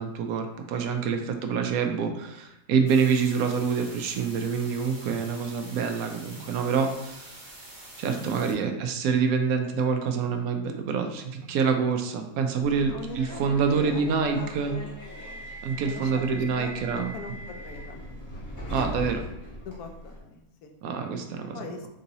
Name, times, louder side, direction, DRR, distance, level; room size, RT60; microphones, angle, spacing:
voice 1, 0.0-7.4 8.0-14.7 15.6-17.1 18.7-19.2 20.8-21.6, right 6 dB, 75° right, 5 dB, 1.0 m, -26 dB
sound 1, 2.9-8.5, right 1 dB, 45° right, 1.7 m, -46 dB
voice 2, 8.2-8.6 12.7-13.4 13.7-14.9 15.8-18.0 19.6-20.7 21.5-21.9, left 4 dB, 80° left, 4 dB, 1.1 m, -41 dB
Subway metro underground, 12.6-20.2, equal, 15° left, 0.8 m, -40 dB
4.0 x 3.8 x 2.7 m, 0.86 s
omnidirectional pair, 1.6 m